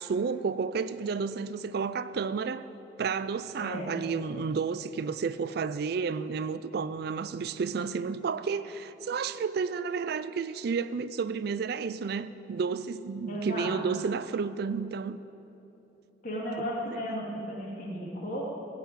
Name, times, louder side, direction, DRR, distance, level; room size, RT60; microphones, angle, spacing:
voice 1, 0.0-2.6 3.0-15.2, right 5 dB, 60° right, 0.4 m, -31 dB
voice 2, 3.6-3.9 13.3-14.0 16.2-18.4, equal, 50° left, 2.9 m, -35 dB
16.0 x 5.8 x 8.9 m
head